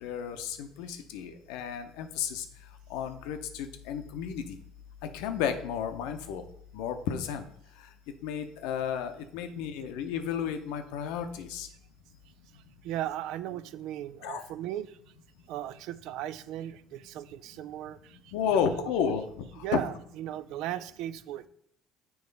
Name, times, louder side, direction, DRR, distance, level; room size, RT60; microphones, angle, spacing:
voice 1, 0.0-2.4 2.9-4.4 5.1-6.4 6.7-7.4 8.2-11.7 14.2-14.4 18.3-19.2 19.7-19.8, left 7 dB, 80° left, 7 dB, 0.7 m, -32 dB
voice 2, 12.8-15.0 15.5-18.9 19.6-21.5, right 12 dB, 70° right, 16 dB, 0.3 m, -37 dB
7.0 x 3.1 x 5.2 m, 0.70 s
supercardioid pair, 90°, 0 cm